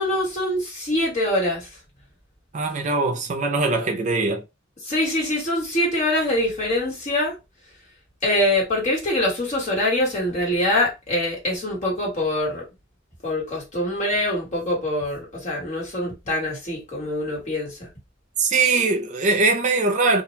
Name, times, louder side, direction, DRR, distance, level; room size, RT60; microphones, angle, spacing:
voice 1, 0.0-1.7 4.8-7.3 8.2-12.6 13.2-17.8, left 1 dB, 40° left, 1.4 m, -24 dB
voice 2, 2.5-4.4 18.4-20.2, right 3 dB, 40° right, 0.4 m, -21 dB
2.4 x 2.2 x 3.0 m
head